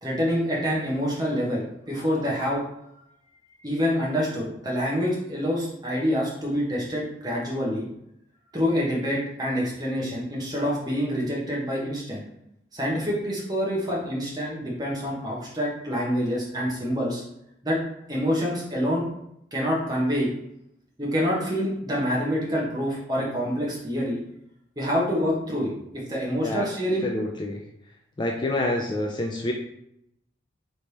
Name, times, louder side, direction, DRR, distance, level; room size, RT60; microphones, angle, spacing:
voice 1, 0.0-2.6 3.6-7.9 8.5-12.2 12.7-17.2 17.6-17.8 18.1-19.0 19.5-20.3 21.0-24.2 24.8-27.1, equal, 20° right, -4 dB, 1.0 m, -26 dB
voice 2, 27.0-27.6 28.2-29.5, left 1 dB, 25° left, 0 dB, 0.3 m, -27 dB
3.3 x 3.1 x 4.1 m, 0.79 s
head